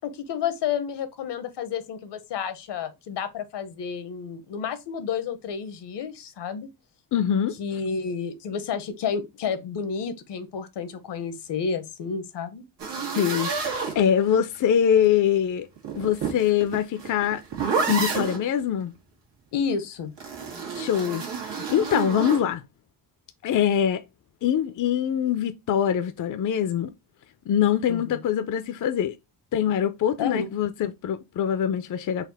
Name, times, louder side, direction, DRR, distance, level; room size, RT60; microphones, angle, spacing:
voice 1, 0.0-6.7 7.6-12.6 19.5-20.1 27.9-28.2 30.2-30.5, left 6 dB, 80° left, 0.9 m, -30 dB
voice 2, 7.1-7.6 13.1-15.7 15.9-17.4 17.9-18.9 20.7-22.6 23.4-24.0 24.4-26.9 27.5-29.2 29.5-32.3, left 9 dB, 50° left, 0.5 m, -24 dB
sound 1, 12.8-14.6 15.8-18.4 20.2-22.5, right 5 dB, 90° right, 1.5 m, -29 dB
4.1 x 2.4 x 4.0 m
cardioid pair, 130°, 41 cm